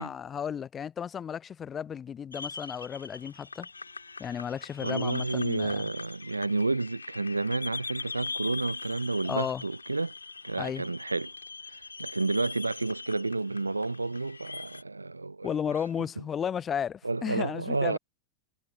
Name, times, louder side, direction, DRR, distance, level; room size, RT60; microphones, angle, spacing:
voice 1, 0.0-3.7 4.2-5.9 9.3-9.6 10.6-10.8 15.4-18.0, left 8 dB, 25° left, 0.4 m, -34 dB
sound 1, 2.3-14.8, left 4 dB, 80° left, 2.8 m, -41 dB
voice 2, 4.8-10.1 10.4-11.3 12.0-15.5 17.0-18.0, right 3 dB, 80° right, 0.5 m, -30 dB
figure-of-eight pair, 90°, 0 cm